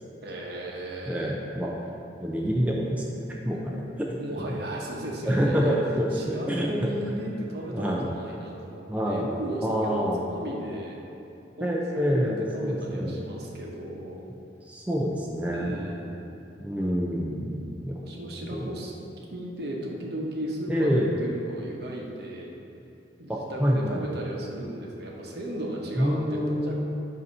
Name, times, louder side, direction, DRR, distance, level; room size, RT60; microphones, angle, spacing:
voice 1, 0.2-1.3 4.2-5.8 6.1-11.0 11.6-14.2 15.5-16.2 18.0-18.9 19.3-22.5 23.2-26.7, right 1 dB, 60° right, -2 dB, 0.9 m, -35 dB
voice 2, 1.1-1.8 2.2-4.2 5.2-6.9 7.7-8.1 8.9-9.3 9.6-10.2 11.6-13.1 14.6-15.8 16.6-18.7 20.7-21.1 23.3-24.0 26.0-26.7, equal, 10° right, -3 dB, 0.5 m, -27 dB
7.8 x 2.8 x 5.4 m, 2.8 s
head